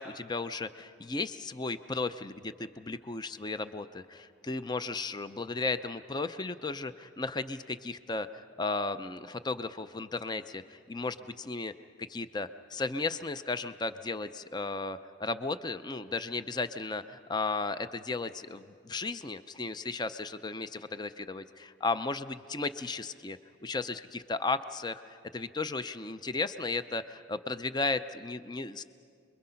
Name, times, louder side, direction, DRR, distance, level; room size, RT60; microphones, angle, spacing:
voice 1, 0.0-11.7 12.0-25.0 25.3-28.8, left 3 dB, 20° left, 11 dB, 0.5 m, -35 dB
29.0 x 22.5 x 5.7 m, 2.3 s
head